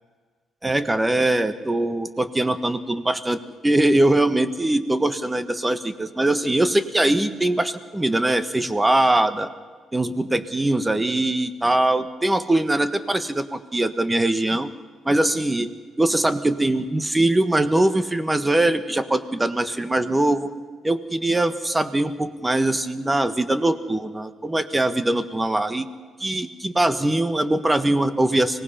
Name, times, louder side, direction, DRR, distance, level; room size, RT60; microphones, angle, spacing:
voice 1, 0.6-3.4 3.6-9.5 9.9-14.7 15.0-15.7 16.0-20.5 20.8-25.9 26.2-28.6, right 1 dB, 15° right, 11 dB, 1.4 m, -22 dB
24.5 x 18.5 x 5.8 m, 1.5 s
cardioid pair, 90°, 0 cm